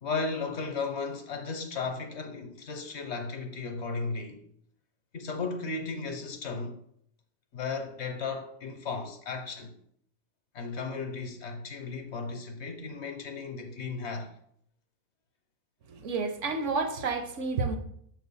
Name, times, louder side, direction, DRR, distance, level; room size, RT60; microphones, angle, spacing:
voice 1, 0.0-4.4 5.1-6.8 7.5-9.7 10.5-14.3, left 4 dB, 60° left, 1.0 m, -35 dB
voice 2, 15.9-17.8, right 4 dB, 65° right, 1.0 m, -30 dB
6.4 x 3.1 x 5.4 m
omnidirectional pair, 1.4 m